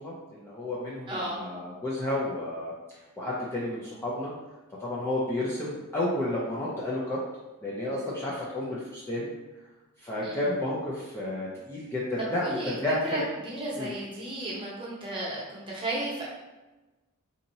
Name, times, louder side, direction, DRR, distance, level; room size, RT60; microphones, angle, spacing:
voice 1, 0.0-2.7 3.2-4.3 4.8-7.2 7.6-9.3 10.0-13.2 13.8-13.9, left 1 dB, 10° left, -7 dB, 0.4 m, -31 dB
voice 2, 1.1-1.4 10.2-10.4 12.3-12.8 13.1-16.2, right 1 dB, 20° right, -5 dB, 0.9 m, -34 dB
4.1 x 2.7 x 2.7 m, 1.1 s
head